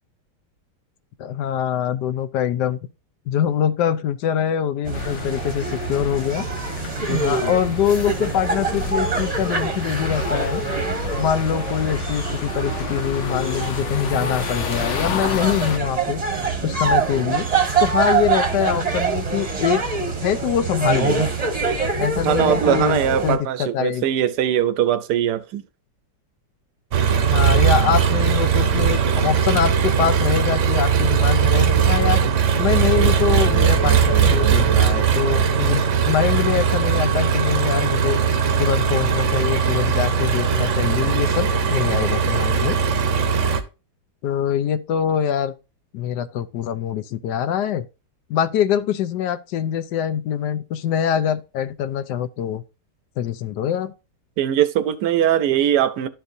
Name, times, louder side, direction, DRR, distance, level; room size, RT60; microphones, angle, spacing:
voice 1, 1.2-2.8 3.3-6.5 7.1-10.6 11.2-16.2 16.6-17.5 17.8-19.8 20.2-21.3 22.0-24.0 27.3-32.2 32.6-38.2 38.6-42.8 44.2-45.5 45.9-47.9 48.3-52.6 53.2-53.9, left 9 dB, 75° left, 1.2 m, -24 dB
sound 1, 4.8-23.4, right 4 dB, 25° right, 0.9 m, -25 dB
sound 2, 4.9-15.8, left 8 dB, 60° left, 0.8 m, -32 dB
voice 2, 22.2-25.6 54.4-56.1, right 10 dB, 75° right, 1.2 m, -20 dB
Engine, 26.9-43.6, right 7 dB, 55° right, 0.9 m, -19 dB
12.0 x 4.5 x 2.6 m
omnidirectional pair, 1.9 m